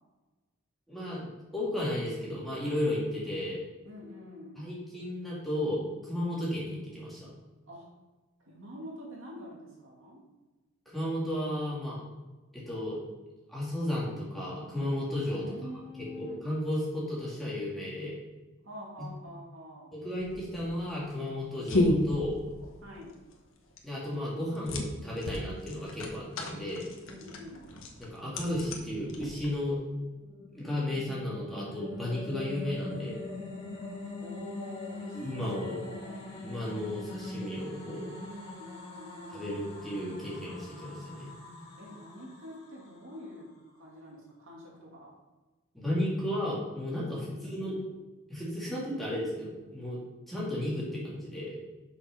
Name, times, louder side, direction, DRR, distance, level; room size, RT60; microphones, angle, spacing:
voice 1, 0.9-3.6 4.6-5.8 6.1-7.3 10.9-12.0 12.5-13.0 13.5-15.4 16.2-18.2 19.0-19.1 19.9-22.4 23.8-26.9 28.0-29.8 30.5-33.2 35.1-35.8 36.4-38.1 39.3-41.3 45.7-47.9 48.3-50.0 50.3-51.6, left 1 dB, ahead, -7 dB, 2.4 m, -34 dB
voice 2, 3.8-4.7 7.7-7.9 8.4-10.2 15.3-16.4 18.6-19.9 20.3-20.5 22.8-23.1 27.0-27.7 33.7-36.2 38.0-39.7 41.8-43.5 43.7-45.1 46.9-47.6, left 1 dB, 75° right, -3 dB, 2.4 m, -46 dB
sound 1, 20.2-29.7, left 1 dB, 70° left, 1.2 m, -34 dB
sound 2, 30.0-43.4, left 2 dB, 35° left, 2.0 m, -43 dB
6.3 x 6.0 x 5.2 m, 1.2 s
head